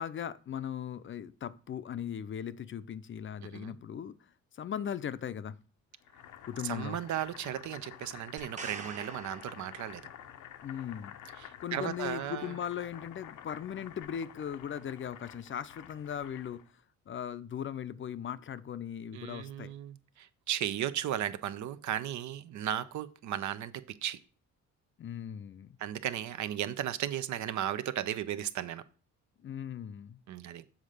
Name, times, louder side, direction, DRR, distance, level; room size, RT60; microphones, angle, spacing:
voice 1, 0.0-5.6 6.5-7.0 10.6-11.1 11.6-16.6 17.1-19.7 25.0-25.8 29.4-30.2, left 9 dB, 40° left, 0.5 m, -38 dB
Boiling, 6.1-16.7, left 10 dB, 80° left, 0.7 m, -50 dB
voice 2, 6.6-10.0 11.4-12.5 19.1-24.2 25.8-28.8 30.3-30.6, right 11 dB, 70° right, 0.7 m, -35 dB
sound 1, 8.4-10.4 14.0-14.1, right 4 dB, 25° right, 1.0 m, -46 dB
7.2 x 3.8 x 6.5 m
cardioid pair, 90°, 30 cm